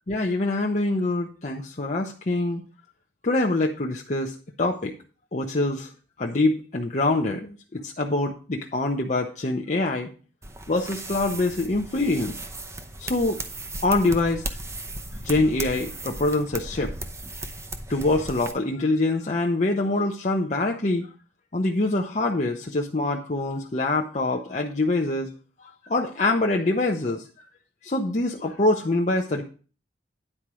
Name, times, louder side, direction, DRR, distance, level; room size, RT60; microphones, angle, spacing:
voice 1, 0.1-2.6 3.2-4.9 5.3-5.9 6.2-10.1 10.7-12.4 13.0-13.4 13.8-14.5 15.2-16.9 17.9-21.1 21.5-25.3 25.6-27.5 27.8-29.4, left 2 dB, 40° left, 0 dB, 0.8 m, -25 dB
sound 1, 10.4-18.5, right 2 dB, 15° right, 0.7 m, -36 dB
9.9 x 4.5 x 6.1 m, 0.37 s
head